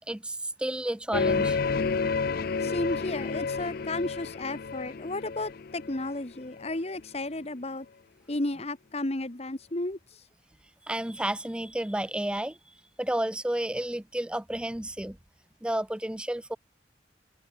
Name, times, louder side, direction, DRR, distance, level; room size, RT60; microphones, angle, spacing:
voice 1, 0.1-1.6 10.8-12.6 13.0-15.2 15.6-16.6, right 1 dB, 5° right, 0.4 m, -31 dB
sound 1, 1.1-6.7, left 4 dB, 50° left, 0.5 m, -30 dB
voice 2, 2.6-7.9 8.3-10.2, left 2 dB, 35° left, 1.3 m, -33 dB
head